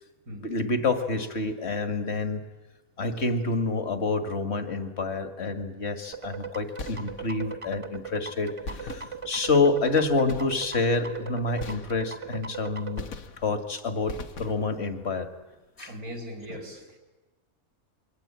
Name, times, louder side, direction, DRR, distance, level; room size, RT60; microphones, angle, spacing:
voice 1, 0.3-2.4 3.0-13.0 13.4-15.3 15.8-15.9, left 3 dB, 45° left, 2.2 m, -28 dB
sound 1, 6.1-13.0, right 5 dB, 25° right, 1.1 m, -39 dB
sound 2, 6.8-7.5 8.6-9.6 10.3-10.9 11.6-12.4 13.0-13.7 14.1-14.9, left 3 dB, 70° left, 1.8 m, -40 dB
voice 2, 15.8-17.0, equal, 85° right, 4.6 m, -39 dB
27.5 x 23.0 x 8.8 m
omnidirectional pair, 1.5 m